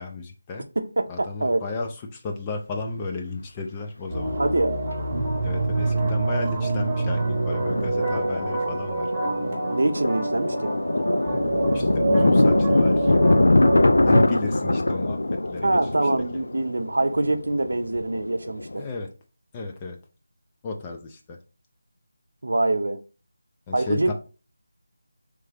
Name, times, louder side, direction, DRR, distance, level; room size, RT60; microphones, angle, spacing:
voice 1, 0.0-0.7 1.1-4.4 5.4-9.1 11.7-13.2 14.0-15.8 18.8-19.1 19.5-20.0 20.6-21.4 23.7-24.1, left 3 dB, 15° left, 0.4 m, -33 dB
voice 2, 0.8-1.7 4.4-4.8 9.7-10.7 15.6-18.9 22.4-23.0 23.7-24.1, right 2 dB, 75° right, 0.6 m, -24 dB
Thunder, 2.7-2.8 4.2-5.0 5.2-5.3 5.8-6.0 6.4-18.8, left 2 dB, 80° left, 0.4 m, -23 dB
sound 1, 4.1-14.2, right 2 dB, 15° right, 0.9 m, -26 dB
3.7 x 3.3 x 3.4 m
figure-of-eight pair, 175°, 0 cm